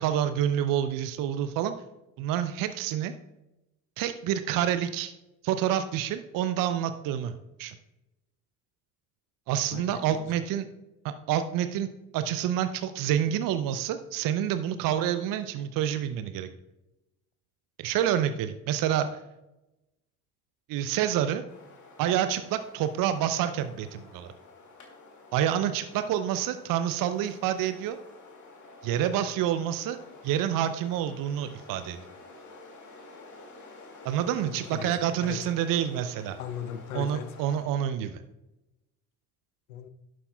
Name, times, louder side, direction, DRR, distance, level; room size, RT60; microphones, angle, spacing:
voice 1, 0.0-1.7 2.2-3.1 4.0-5.1 5.4-7.3 7.6-7.8 9.5-10.7 11.0-11.9 12.1-16.5 17.8-19.1 20.7-21.4 22.0-24.3 25.3-28.0 28.8-30.0 30.2-32.0 34.0-36.4 36.9-38.2, right 10 dB, 50° right, 11 dB, 0.6 m, -28 dB
voice 2, 9.7-10.3 34.7-35.4 36.4-37.3 39.7-39.9, left 8 dB, 80° left, 10 dB, 0.7 m, -38 dB
sound 1, 21.5-37.6, left 3 dB, 45° left, 2.3 m, -50 dB
11.0 x 7.7 x 2.3 m, 0.93 s
figure-of-eight pair, 50°, 42 cm